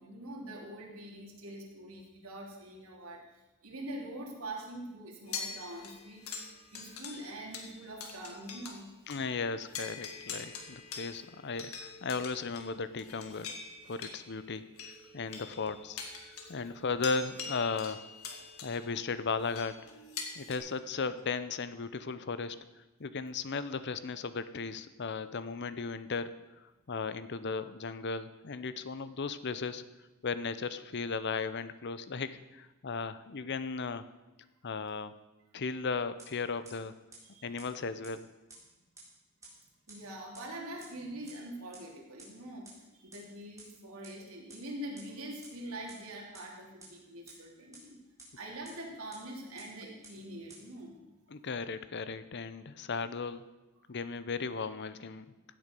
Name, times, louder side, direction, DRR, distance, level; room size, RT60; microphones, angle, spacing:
voice 1, 0.0-3.2 3.6-8.9 10.9-11.0 37.2-37.7 39.9-48.0 48.4-51.0, right 1 dB, 85° right, -1 dB, 3.1 m, -44 dB
sound 1, 5.3-8.8 9.1-9.2 9.6-20.6, left 5 dB, 80° left, 1.8 m, -44 dB
voice 2, 9.1-13.5 13.9-16.0 16.5-18.0 18.6-19.8 20.4-22.6 23.0-26.3 26.6-29.8 30.2-34.0 34.6-35.1 35.5-36.9 37.4-38.3 51.3-53.4 53.9-55.3, left 4 dB, 55° left, 13 dB, 0.7 m, -36 dB
sound 2, 36.2-36.3 36.6-36.7 37.1-37.2 37.6-37.7 38.0-38.1 38.5-38.6 39.0-39.1 39.4-39.5 39.9-40.0 40.3-40.4 40.8-40.9 41.3-41.4 41.7-41.8 42.2-42.3 42.6-42.7 43.1-43.2 43.6-43.7 44.0-44.1 44.5-44.6 45.0-45.1 45.4-45.5 45.9-46.0 46.3-46.4 46.8-46.9 47.3-47.4 47.7-47.8 48.2-48.3 48.6-48.7 49.1-49.2 49.6-49.7 50.0-50.1 50.5-50.6, right 4 dB, 15° right, 4.0 m, -50 dB
16.0 x 8.7 x 5.3 m, 1.1 s
head